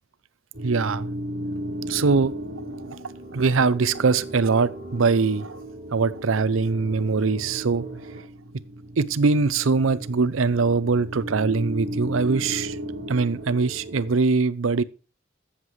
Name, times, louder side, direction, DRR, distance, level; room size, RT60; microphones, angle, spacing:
sound 1, 0.5-14.1, right 1 dB, 70° right, 2.8 m, -35 dB
voice 1, 0.6-1.1 1.9-2.3 2.9-3.0 3.3-5.6 5.9-7.8 9.0-12.8 13.1-14.8, right 4 dB, 85° right, 0.6 m, -22 dB
14.0 x 7.4 x 3.2 m
head